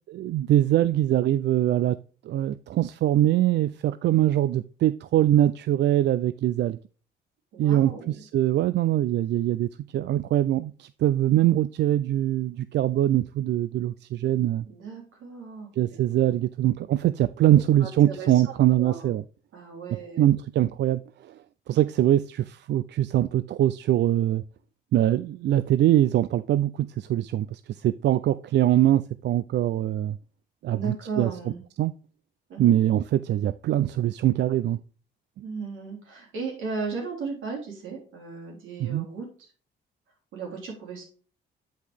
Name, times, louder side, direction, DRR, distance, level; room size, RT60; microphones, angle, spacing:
voice 1, 0.1-2.0 2.2-6.8 7.6-14.6 15.8-19.2 20.2-21.4 21.7-24.4 24.9-30.2 30.6-31.3 31.8-31.9 32.6-34.8 38.8-39.1, right 12 dB, 60° right, 0.4 m, -23 dB
voice 2, 7.5-8.2 14.6-15.7 17.5-18.3 18.8-19.0 19.5-20.3 30.7-31.6 32.5-32.7 35.4-39.3 40.3-41.0, right 4 dB, 80° right, 3.1 m, -36 dB
7.8 x 5.2 x 3.3 m
cardioid pair, 90°, 20 cm